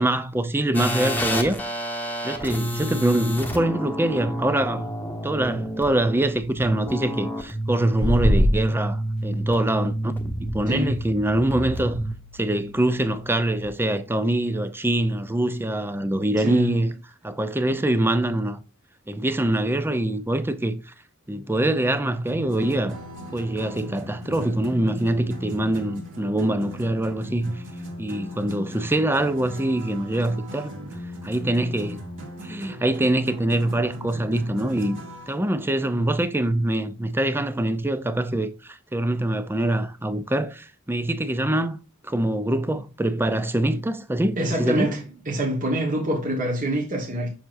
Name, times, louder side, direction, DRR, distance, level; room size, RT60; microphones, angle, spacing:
voice 1, 0.0-1.6 2.2-4.9 5.2-10.1 10.5-12.0 12.3-16.9 17.2-18.6 19.1-20.9 21.3-23.0 23.3-27.5 28.0-30.7 31.2-32.0 32.4-35.0 35.3-41.8 42.0-44.9, right 1 dB, 10° right, 0.5 m, -24 dB
sound 1, 0.7-13.7, equal, 10° left, 1.1 m, -30 dB
sound 2, 8.0-8.6, equal, 80° right, 1.2 m, -19 dB
voice 2, 10.7-11.0 16.4-16.7 44.4-47.3, right 1 dB, 35° right, 1.4 m, -26 dB
sound 3, 22.2-35.4, equal, 60° right, 2.0 m, -39 dB
7.1 x 5.9 x 2.6 m
head